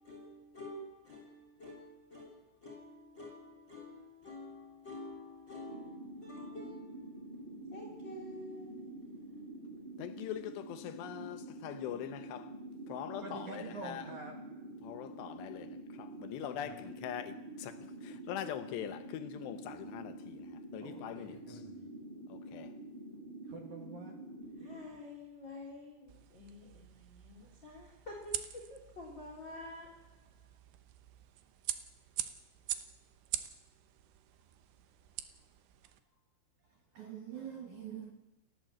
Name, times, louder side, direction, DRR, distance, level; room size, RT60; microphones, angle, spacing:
voice 1, 0.0-7.4 7.7-8.9 24.6-29.9, left 2 dB, 25° left, 3.4 m, -49 dB
sound 1, 5.6-24.8, right 1 dB, 10° right, 3.1 m, -47 dB
voice 2, 10.0-12.5 12.9-14.1 14.8-21.6 22.3-22.7, left 11 dB, 75° left, 2.7 m, -43 dB
voice 3, 13.2-14.3 16.7-16.8 20.8-21.9 23.5-24.2 24.6-24.7 36.9-38.1, right 5 dB, 55° right, 2.3 m, -46 dB
sound 2, 26.1-36.0, right 13 dB, 75° right, 2.8 m, -44 dB
29.0 x 12.0 x 7.6 m
omnidirectional pair, 5.8 m